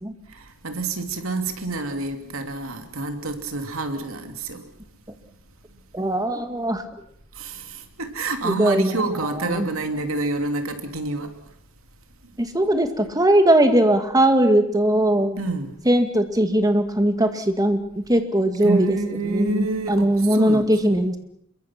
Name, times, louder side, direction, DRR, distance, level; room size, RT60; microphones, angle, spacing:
voice 1, 0.3-4.7 7.3-11.4 15.4-15.8 18.6-21.0, right 2 dB, 85° right, 2.8 m, -28 dB
voice 2, 5.9-6.8 8.4-9.7 12.4-15.4 15.9-19.0 19.3-21.2, right 1 dB, 20° right, 2.1 m, -20 dB
26.5 x 22.5 x 6.0 m
head